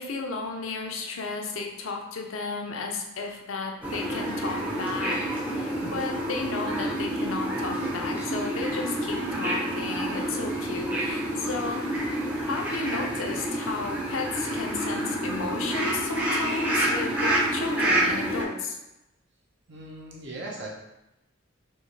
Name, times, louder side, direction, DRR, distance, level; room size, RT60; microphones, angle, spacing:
voice 1, 0.0-11.8 12.4-18.8, left 3 dB, 80° left, 2 dB, 0.6 m, -33 dB
sound 1, 3.8-18.4, right 1 dB, 10° right, 0.6 m, -28 dB
voice 2, 19.7-20.7, right 2 dB, 60° right, -3 dB, 0.9 m, -39 dB
4.3 x 2.7 x 3.3 m, 0.93 s
head